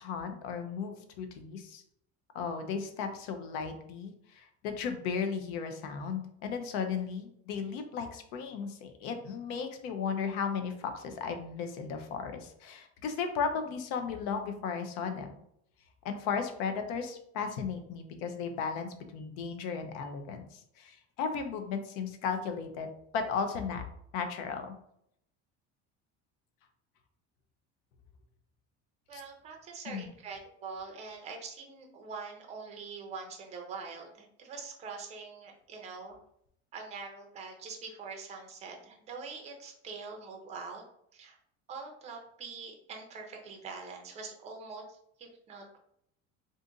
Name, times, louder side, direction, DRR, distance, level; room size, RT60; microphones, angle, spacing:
voice 1, 0.0-1.8 2.3-15.3 16.0-22.9 23.1-23.8 24.1-24.7 29.1-29.2 29.9-30.1, left 6 dB, 80° left, 7 dB, 0.6 m, -35 dB
voice 2, 29.1-36.2 36.7-40.8 41.1-41.4 41.7-45.8, right 4 dB, 20° right, 2 dB, 0.4 m, -44 dB
2.6 x 2.5 x 3.8 m, 0.72 s
cardioid pair, 170°, 32 cm